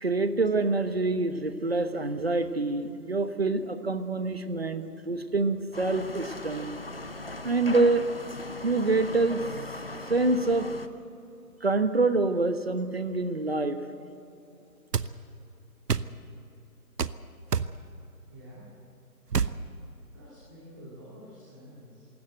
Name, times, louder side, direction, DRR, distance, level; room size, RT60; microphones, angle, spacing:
voice 1, 0.0-6.8 7.4-8.1 8.6-9.4 10.1-10.7 11.6-13.8, right 3 dB, 40° right, 10 dB, 1.1 m, -26 dB
sound 1, 5.7-10.9, left 2 dB, 35° left, 0.8 m, -39 dB
sound 2, 14.9-15.1 15.9-16.1 17.0-17.2 17.5-17.7 19.3-19.6, right 6 dB, 75° right, 0.9 m, -26 dB
voice 2, 18.2-18.8 20.1-22.1, equal, 15° right, -7 dB, 2.4 m, -49 dB
22.0 x 17.0 x 7.8 m, 2.9 s
figure-of-eight pair, 170°, 48 cm